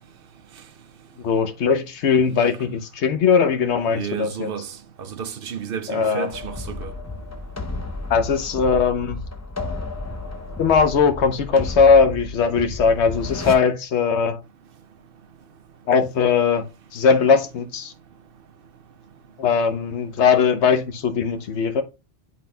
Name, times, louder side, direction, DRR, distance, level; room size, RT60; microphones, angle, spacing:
voice 1, 1.2-4.5 5.9-6.3 8.1-9.2 10.6-14.4 15.9-16.7 16.9-17.9 19.4-21.8, left 5 dB, 90° left, 1.1 m, -19 dB
voice 2, 3.9-6.9, right 7 dB, 60° right, 0.8 m, -32 dB
sound 1, 6.3-13.6, left 3 dB, 20° left, 0.6 m, -32 dB
11.0 x 3.9 x 2.2 m
omnidirectional pair, 1.1 m